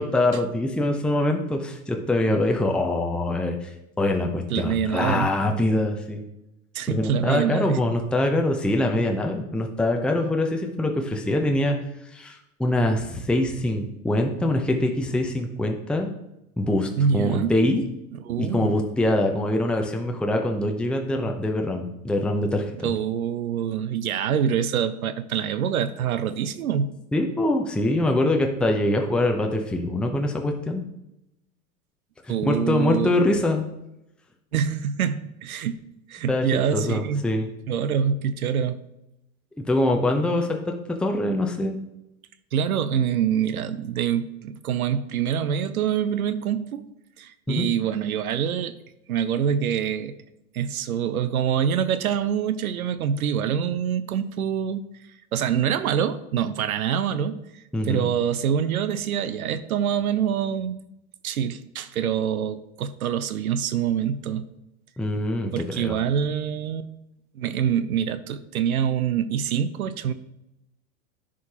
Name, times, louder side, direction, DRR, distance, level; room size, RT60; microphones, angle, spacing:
voice 1, 0.0-3.7 4.0-6.2 6.9-11.8 12.1-16.1 16.6-17.8 18.4-22.9 27.1-30.8 32.3-33.7 36.3-36.5 36.7-37.5 39.7-41.8 47.5-47.7 57.7-58.1 65.0-65.9, left 1 dB, ahead, 2 dB, 0.8 m, -24 dB
voice 2, 4.5-5.3 6.7-7.8 17.0-17.5 18.1-18.7 22.8-26.9 32.3-33.1 34.5-35.8 36.1-37.2 37.7-38.8 42.5-46.8 47.2-48.7 49.1-50.1 50.5-54.8 55.3-60.8 61.2-64.5 65.5-66.9 67.3-70.1, right 8 dB, 85° right, 12 dB, 0.6 m, -25 dB
11.0 x 5.0 x 2.9 m, 0.87 s
hypercardioid pair, 90°, 42 cm